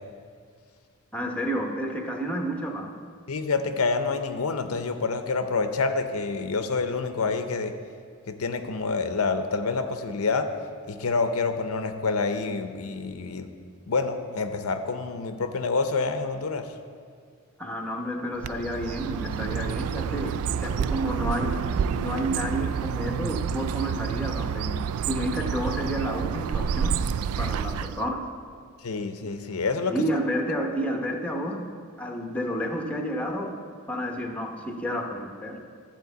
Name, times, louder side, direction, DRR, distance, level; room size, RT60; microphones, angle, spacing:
voice 1, 1.1-3.0 17.6-27.0 27.4-28.3 29.9-31.7 32.0-33.6 33.9-35.6, equal, 5° left, 2 dB, 0.9 m, -30 dB
voice 2, 3.3-7.7 8.3-10.5 10.9-13.5 13.9-16.7 28.8-29.9, left 4 dB, 80° left, 8 dB, 0.7 m, -27 dB
Bird, 18.4-28.1, right 7 dB, 80° right, 0.3 m, -29 dB
12.0 x 4.4 x 7.9 m, 2.1 s
head